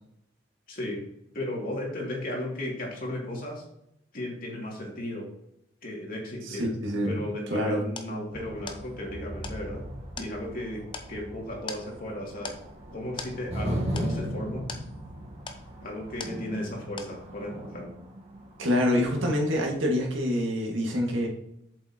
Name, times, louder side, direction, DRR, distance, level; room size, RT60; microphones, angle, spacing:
voice 1, 0.7-1.0 1.3-3.6 4.1-5.3 5.8-6.7 7.0-9.8 10.2-10.8 11.1-12.5 12.9-14.7 15.8-17.9, left 1 dB, 50° left, -2 dB, 2.6 m, -35 dB
voice 2, 6.5-7.2 7.5-7.8 18.6-21.3, left 1 dB, 90° right, -1 dB, 2.1 m, -26 dB
sound 1, 8.0-16.7 17.0-17.6, left 4 dB, 25° left, 0.7 m, -43 dB
sound 2, 8.3-20.1, equal, 35° right, 1.4 m, -38 dB
7.8 x 7.7 x 3.0 m, 0.78 s
head